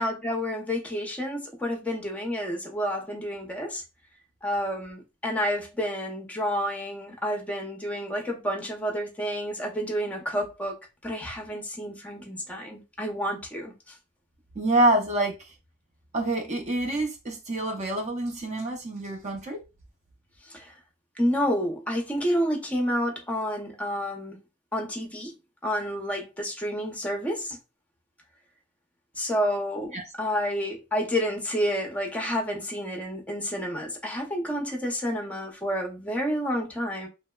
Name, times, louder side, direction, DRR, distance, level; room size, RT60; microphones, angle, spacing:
voice 1, 0.0-3.8 4.4-10.8 11.0-13.7 20.5-20.7 21.2-24.4 24.7-25.3 25.6-27.6 29.2-37.1, equal, 5° left, 0.6 m, -29 dB
voice 2, 14.6-15.3 16.1-19.6 29.9-30.0, right 1 dB, 30° right, 0.5 m, -26 dB
2.9 x 2.0 x 2.2 m
head